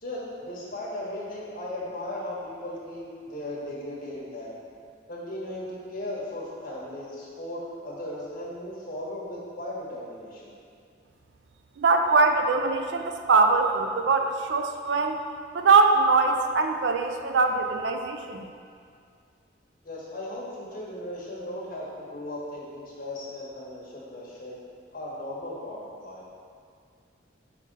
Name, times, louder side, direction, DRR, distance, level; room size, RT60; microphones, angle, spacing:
voice 1, 0.0-4.5 5.1-10.5 19.8-24.6 24.9-26.2, left 1 dB, 45° left, -6 dB, 1.4 m, -37 dB
voice 2, 11.8-15.2 15.5-18.5, right 4 dB, 65° right, 5 dB, 0.4 m, -22 dB
5.5 x 3.7 x 5.4 m, 2.3 s
head